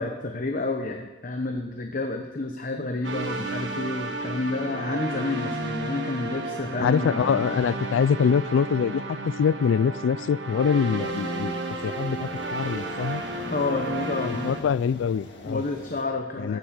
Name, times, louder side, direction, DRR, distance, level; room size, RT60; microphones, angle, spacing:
voice 1, 0.0-7.6 13.5-14.6 15.4-16.6, left 2 dB, 45° left, 4 dB, 1.0 m, -30 dB
sound 1, 3.0-14.6, right 2 dB, 65° right, 1.4 m, -32 dB
voice 2, 6.8-11.5 11.8-13.2 14.2-15.6 16.4-16.6, left 6 dB, 90° left, 21 dB, 0.3 m, -24 dB
sound 2, 11.0-16.0, left 1 dB, 65° left, 1.8 m, -45 dB
15.0 x 9.2 x 6.5 m, 1.2 s
head